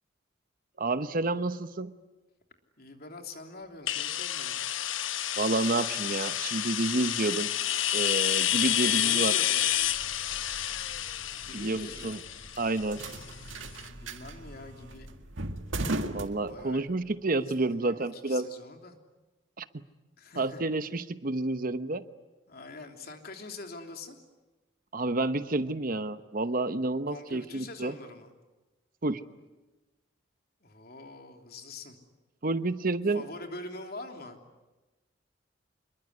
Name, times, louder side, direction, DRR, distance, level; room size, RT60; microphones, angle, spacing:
voice 1, 0.8-1.9 5.4-7.5 7.9-9.3 11.5-12.2 12.6-13.0 16.1-18.5 19.6-19.7 20.4-22.0 24.9-27.9 29.0-29.2 32.4-33.2, right 2 dB, 45° right, 12 dB, 0.9 m, -29 dB
voice 2, 2.8-4.6 8.7-9.6 11.4-12.2 13.9-15.1 16.4-17.1 17.4-19.0 20.2-20.6 22.5-24.2 27.1-28.3 30.6-32.0 33.1-34.4, left 2 dB, 50° left, 4 dB, 3.3 m, -44 dB
sound 1, 3.9-13.5, left 12 dB, 80° left, 1.0 m, -29 dB
sound 2, 9.7-17.1, right 2 dB, 75° right, 1.9 m, -39 dB
27.0 x 22.0 x 9.8 m, 1.1 s
head